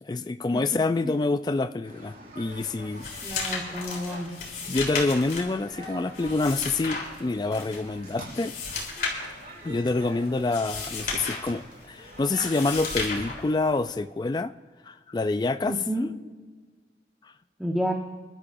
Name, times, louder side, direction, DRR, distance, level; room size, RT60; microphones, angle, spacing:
voice 1, 0.0-3.5 4.7-8.5 9.6-14.5 14.8-15.8 17.2-17.3, left 3 dB, 25° left, 11 dB, 0.3 m, -27 dB
sound 1, 1.8-13.3, right 1 dB, 45° right, 4.9 m, -45 dB
sound 2, 2.5-14.0, left 4 dB, 50° left, 3.4 m, -35 dB
voice 2, 3.2-4.3 15.6-16.1 17.6-17.9, equal, ahead, -1 dB, 1.1 m, -29 dB
26.5 x 12.5 x 2.6 m, 1.4 s
head